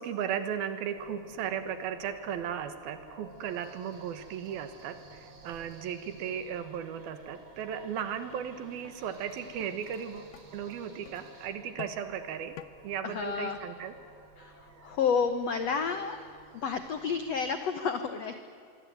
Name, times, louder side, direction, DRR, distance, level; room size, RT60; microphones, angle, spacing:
voice 1, 0.0-12.6 12.8-13.9, right 8 dB, 70° right, 10 dB, 3.1 m, -36 dB
sound 1, 0.9-17.6, right 3 dB, 40° right, 3.7 m, -54 dB
sound 2, 8.8-9.0 9.6-9.7 10.3-10.4 11.0-11.2 11.8-12.0 12.6-12.7, left 11 dB, 75° left, 2.0 m, -44 dB
voice 2, 13.0-13.6 14.4-16.2 16.5-18.3, left 6 dB, 90° left, 9 dB, 1.4 m, -30 dB
25.0 x 24.5 x 9.4 m, 2.3 s
omnidirectional pair, 4.8 m